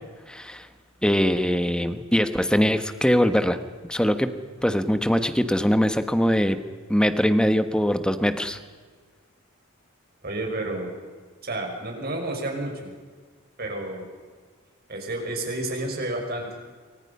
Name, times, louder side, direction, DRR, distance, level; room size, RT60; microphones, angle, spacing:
voice 1, 0.3-0.7 1.0-3.6 3.9-4.3 4.6-6.6 6.9-8.6, equal, 5° left, 9 dB, 1.3 m, -22 dB
voice 2, 10.2-10.9 11.4-12.9 13.6-14.1 14.9-16.5, right 1 dB, 45° right, 2 dB, 5.9 m, -30 dB
27.5 x 24.5 x 5.6 m, 1.5 s
head